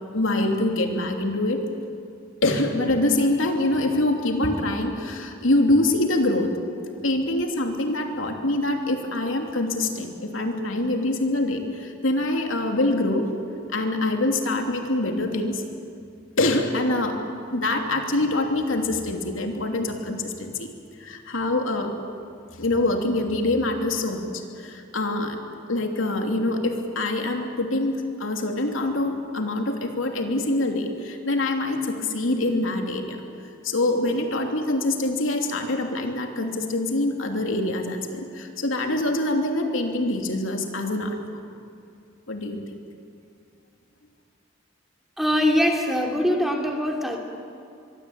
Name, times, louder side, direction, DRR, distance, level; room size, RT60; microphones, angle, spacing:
voice 1, 0.1-1.6 2.4-6.5 7.0-13.3 13.7-15.6 16.4-17.2 17.5-20.7 21.0-21.9 22.5-25.4 25.7-33.2 33.6-41.4 42.3-42.6, left 2 dB, 85° left, 3 dB, 3.0 m, -25 dB
voice 2, 45.2-47.2, equal, ahead, 1 dB, 2.8 m, -22 dB
23.5 x 23.5 x 8.9 m, 2.4 s
head